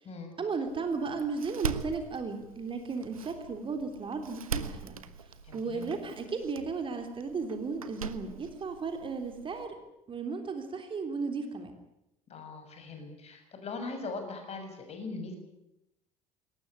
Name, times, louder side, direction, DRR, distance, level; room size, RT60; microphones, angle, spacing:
voice 1, 0.4-5.0 5.5-9.8 10.1-11.8, right 4 dB, 30° right, 6 dB, 3.4 m, -35 dB
Door, 0.7-9.7, right 6 dB, 80° right, 1.2 m, -41 dB
voice 2, 5.4-5.9 12.3-15.4, left 3 dB, 35° left, 5 dB, 6.8 m, -40 dB
22.0 x 19.0 x 9.8 m, 0.88 s
figure-of-eight pair, 65°, 18 cm